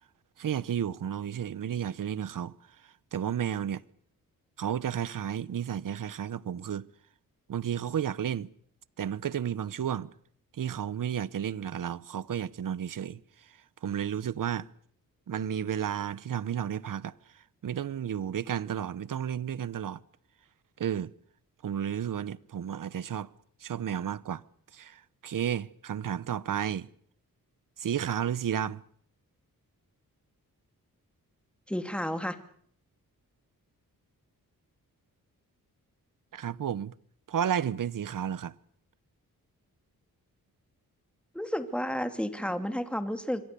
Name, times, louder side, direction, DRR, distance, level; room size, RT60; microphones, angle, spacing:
voice 1, 0.4-2.5 3.1-3.8 4.6-6.9 7.5-8.5 9.0-10.1 10.5-13.2 13.8-14.7 15.3-17.1 17.6-20.0 20.8-21.1 21.6-23.3 23.6-24.4 24.7-26.9 27.8-28.8 36.3-36.9 37.3-38.5, right 9 dB, 65° right, 1.0 m, -32 dB
voice 2, 31.7-32.4 41.3-43.4, equal, 5° left, 2.7 m, -31 dB
26.0 x 23.0 x 7.0 m
cardioid pair, 75°, 35 cm